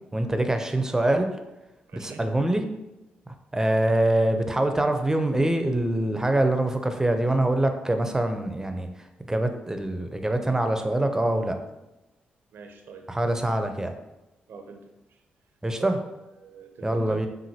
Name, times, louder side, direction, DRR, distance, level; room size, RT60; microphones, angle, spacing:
voice 1, 0.1-1.3 1.9-2.6 3.5-8.9 9.2-11.6 13.1-13.9 15.6-16.0 16.8-17.3, right 1 dB, 15° right, 6 dB, 0.6 m, -24 dB
voice 2, 1.9-2.2 12.5-13.0 14.5-15.2 15.8-15.9 16.4-17.2, right 5 dB, 70° right, 5 dB, 0.6 m, -43 dB
5.8 x 2.6 x 2.8 m, 0.98 s
supercardioid pair, 55°, 4 cm